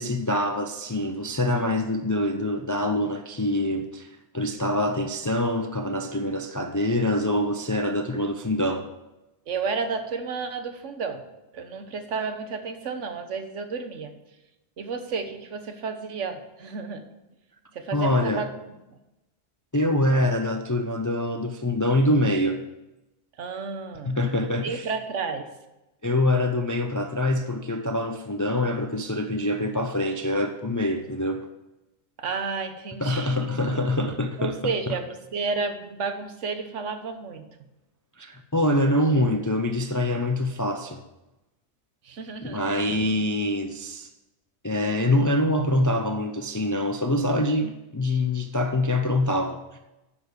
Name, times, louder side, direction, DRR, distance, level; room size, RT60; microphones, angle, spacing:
voice 1, 0.0-8.9 17.9-18.5 19.7-22.6 24.0-24.9 26.0-31.5 33.0-35.0 38.2-41.0 42.4-44.1 44.6-49.8, left 1 dB, 20° left, 0.5 m, -25 dB
voice 2, 9.5-11.2 11.5-14.1 14.8-17.0 17.7-18.7 23.4-24.2 24.5-25.5 32.2-33.5 34.4-37.4 42.0-42.7, right 4 dB, 70° right, 1.4 m, -32 dB
10.5 x 7.1 x 6.6 m
omnidirectional pair, 1.3 m